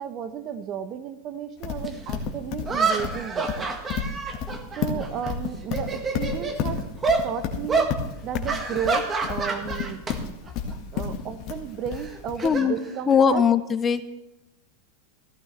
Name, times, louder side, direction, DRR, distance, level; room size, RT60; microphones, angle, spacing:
voice 1, 0.0-3.7 4.8-6.8 7.2-7.9 8.2-10.0 10.9-13.4, right 8 dB, 40° right, 12 dB, 0.9 m, -33 dB
Livestock farm animals working animals, 1.6-12.5, left 6 dB, 45° left, 1.8 m, -31 dB
sound 1, 1.8-1.9 2.7-5.3 5.6-6.6 7.0-7.3 7.7-7.9 8.5-10.2 10.5-10.7 11.9-13.4, right 4 dB, 20° right, 1.6 m, -27 dB
voice 2, 12.4-12.8 13.1-14.0, left 6 dB, 25° left, 12 dB, 0.7 m, -20 dB
14.5 x 13.0 x 3.3 m, 0.97 s
hypercardioid pair, 110°, 0 cm